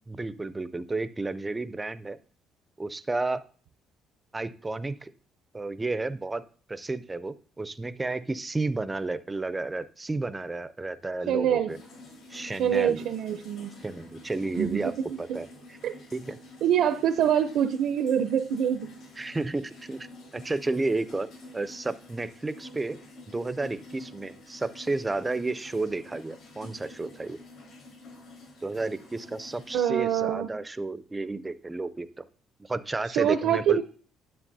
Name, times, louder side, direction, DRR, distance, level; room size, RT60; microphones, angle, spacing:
voice 1, 0.1-2.2 2.8-3.4 4.3-5.1 5.5-6.4 6.7-11.8 12.3-13.1 13.8-14.9 15.2-15.8 16.1-16.4 19.2-20.1 20.3-21.3 21.5-23.0 23.3-27.4 28.6-32.2 32.7-33.8, right 3 dB, 15° right, 14 dB, 0.4 m, -32 dB
voice 2, 11.3-11.7 12.6-13.7 14.6-14.8 15.3-15.4 15.8-15.9 16.6-18.9 29.7-30.5 33.2-33.8, right 9 dB, 70° right, 9 dB, 0.5 m, -25 dB
sound 1, 11.7-29.7, left 2 dB, 60° left, 4.0 m, -49 dB
9.9 x 7.2 x 2.7 m, 0.42 s
cardioid pair, 140°, 0 cm